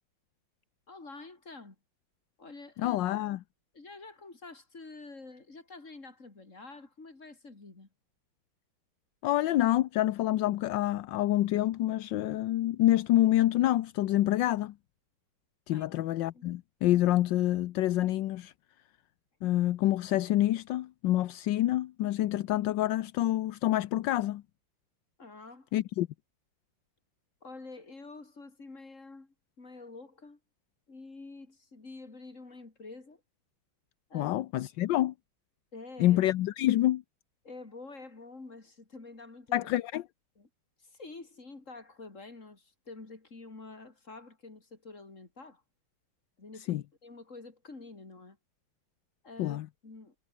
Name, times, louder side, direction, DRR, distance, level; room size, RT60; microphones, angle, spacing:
voice 1, 0.9-1.8 2.4-3.0 3.7-7.9 15.7-16.0 16.3-16.5 25.2-25.7 27.4-30.4 30.9-33.2 34.1-34.3 35.7-36.2 37.4-39.7 40.4-40.5 40.8-45.6 46.4-48.4 49.2-50.1, left 3 dB, 35° left, 4.0 m, -48 dB
voice 2, 2.8-3.4 9.2-14.7 15.7-18.5 19.4-24.4 25.7-26.1 34.1-35.1 36.0-37.0 39.5-40.0 46.7-46.8 49.4-49.7, left 14 dB, 70° left, 1.3 m, -27 dB
omnidirectional pair, 2.4 m